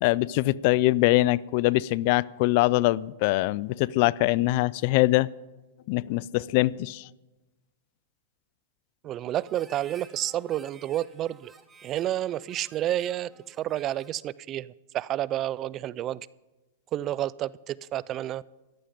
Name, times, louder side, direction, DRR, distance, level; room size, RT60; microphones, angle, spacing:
voice 1, 0.0-5.3 5.9-7.1, left 19 dB, 50° left, 23 dB, 0.3 m, -23 dB
voice 2, 9.0-11.5 11.8-16.3 16.9-18.4, right 13 dB, 35° right, 22 dB, 0.3 m, -30 dB
Harmonica, 9.3-14.2, right 5 dB, 15° right, 1.2 m, -53 dB
14.5 x 11.5 x 5.2 m, 1.1 s
hypercardioid pair, 120°, 0 cm